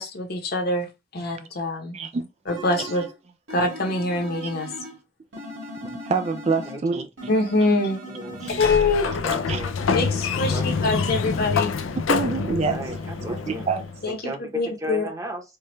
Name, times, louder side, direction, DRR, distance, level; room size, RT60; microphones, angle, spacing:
voice 1, 0.0-2.0 2.5-3.0 3.5-4.7 7.3-8.0 8.6-9.1 9.9-11.7 14.0-15.1, left 2 dB, 50° left, 0.9 m, -24 dB
voice 2, 1.9-2.3 2.8-2.9 5.8-7.3 8.3-8.6 9.5-9.6 12.1-13.0 13.5-13.8, right 5 dB, 35° right, 0.3 m, -27 dB
sound 1, 2.5-3.2 3.5-5.0 5.3-6.8 7.2-8.5, right 1 dB, 90° right, 2.1 m, -38 dB
voice 3, 6.7-7.0 8.0-8.5 8.8-9.7 10.3-10.9 12.5-13.7 14.1-15.4, equal, 15° right, 0.9 m, -36 dB
Sliding door, 8.4-14.1, left 5 dB, 85° left, 0.5 m, -26 dB
4.6 x 2.3 x 3.1 m
head